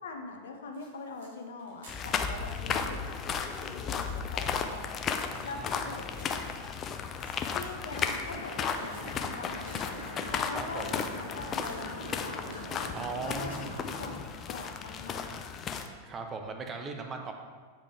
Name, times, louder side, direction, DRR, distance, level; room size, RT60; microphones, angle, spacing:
voice 1, 0.0-4.9 5.4-6.6 7.5-10.0 10.3-12.9 13.2-13.7 14.0-15.5, left 4 dB, 65° left, 3 dB, 0.7 m, -43 dB
sound 1, 0.7-14.6, right 2 dB, 65° right, 1.7 m, -56 dB
sound 2, 1.9-15.9, left 6 dB, 30° left, 0.4 m, -35 dB
voice 2, 5.4-6.1 10.5-11.0 12.9-13.9 16.0-17.3, right 4 dB, 20° right, 4 dB, 0.7 m, -39 dB
sound 3, 7.9-14.1, equal, 80° left, 1.6 m, -43 dB
7.6 x 5.0 x 3.5 m, 1.5 s
figure-of-eight pair, 90°, 0 cm